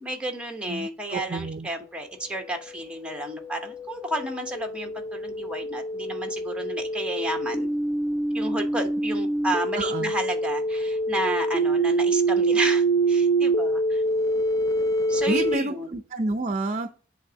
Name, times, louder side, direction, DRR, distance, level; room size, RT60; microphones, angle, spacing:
voice 1, 0.0-7.7 8.3-14.0 15.1-15.9, right 1 dB, 5° right, 4 dB, 1.0 m, -32 dB
voice 2, 0.7-1.7 9.8-10.1 15.3-16.9, right 2 dB, 35° right, 7 dB, 0.5 m, -29 dB
sound 1, 2.3-15.5, right 2 dB, 15° left, 0.5 m, -26 dB
8.0 x 3.5 x 4.9 m, 0.38 s
head